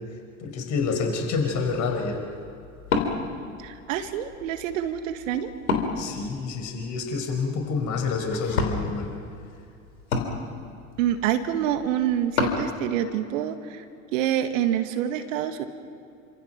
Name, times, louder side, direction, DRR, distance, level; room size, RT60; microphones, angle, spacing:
voice 1, 0.4-2.2 6.0-9.1, left 4 dB, 45° left, 3 dB, 5.4 m, -28 dB
Wood, 1.2-12.7, left 4 dB, 80° left, 3.5 m, -33 dB
voice 2, 3.6-5.5 11.0-13.8 14.1-15.6, right 10 dB, 65° right, 8 dB, 2.1 m, -27 dB
28.5 x 26.0 x 6.0 m, 2.5 s
figure-of-eight pair, 75°, 42 cm